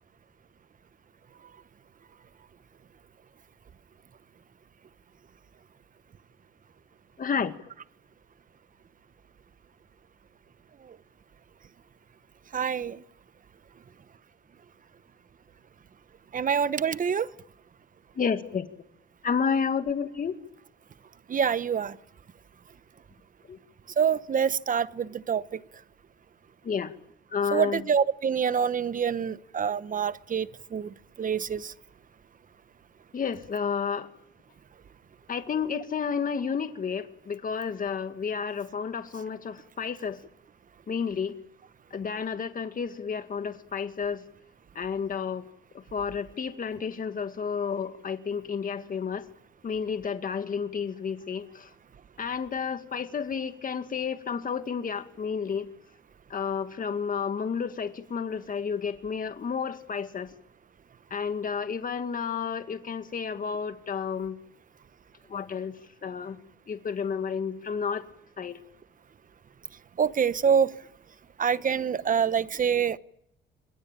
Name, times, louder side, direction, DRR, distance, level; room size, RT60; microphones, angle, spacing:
voice 1, 7.2-7.5 18.2-18.7 19.2-20.4 23.5-23.6 26.6-26.9 27.3-27.8 33.1-34.1 35.3-40.2 40.9-41.3 41.9-44.2 44.8-45.5 45.7-49.2 49.6-51.7 52.2-55.7 56.3-60.3 61.1-64.4 65.3-65.7 66.0-66.4 66.7-68.0 68.4-68.6, left 6 dB, 45° left, 2.0 m, -31 dB
voice 2, 12.5-13.0 16.3-17.3 21.3-22.0 24.0-25.6 27.5-31.7 70.0-70.7 71.4-73.0, right 7 dB, 45° right, 1.1 m, -26 dB
28.0 x 21.5 x 8.9 m
cardioid pair, 90°, 20 cm